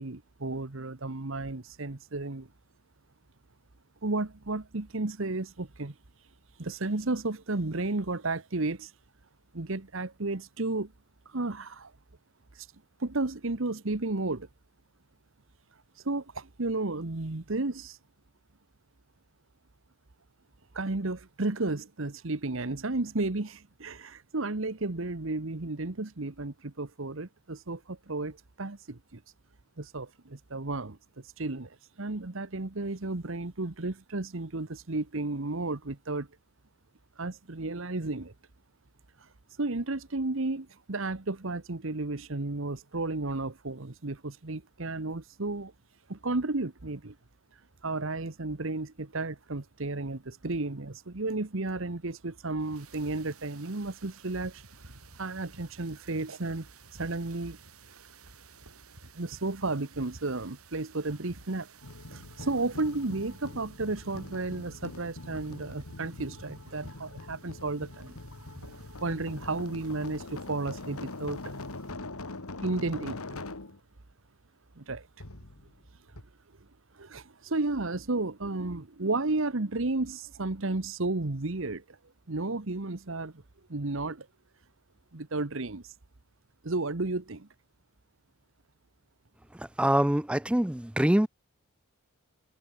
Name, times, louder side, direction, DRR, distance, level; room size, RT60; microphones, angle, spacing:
voice 1, 0.0-2.5 4.0-5.9 6.6-8.9 9.5-10.9 11.3-11.9 12.6-12.7 13.0-14.5 16.0-18.0 20.7-29.2 29.8-31.0 31.4-36.3 37.2-38.3 39.6-45.7 46.1-47.1 47.8-54.6 55.2-56.7 57.0-57.6 59.1-61.7 62.1-68.2 69.0-71.5 72.6-73.4 74.8-75.1 77.0-82.0 82.3-83.3 83.7-84.3 85.1-85.8 86.6-87.5, right 2 dB, 65° right, 1.2 m, -33 dB
sound 1, 52.6-71.9, right 3 dB, 90° right, 6.0 m, -53 dB
sound 2, 61.8-73.8 75.2-75.9 76.2-76.3, left 2 dB, 90° left, 2.3 m, -43 dB
voice 2, 89.8-91.3, right 1 dB, 5° right, 0.5 m, -24 dB
head